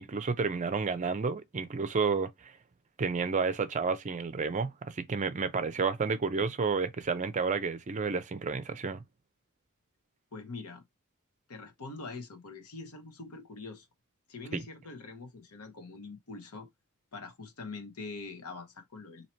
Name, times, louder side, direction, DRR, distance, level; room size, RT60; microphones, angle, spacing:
voice 1, 0.0-2.5 3.0-9.0 14.5-14.6, right 4 dB, 35° right, 0.5 m, -31 dB
voice 2, 10.3-10.8 11.5-13.9 14.3-16.7 17.1-19.3, left 3 dB, 85° left, 1.0 m, -44 dB
2.9 x 2.8 x 4.2 m
head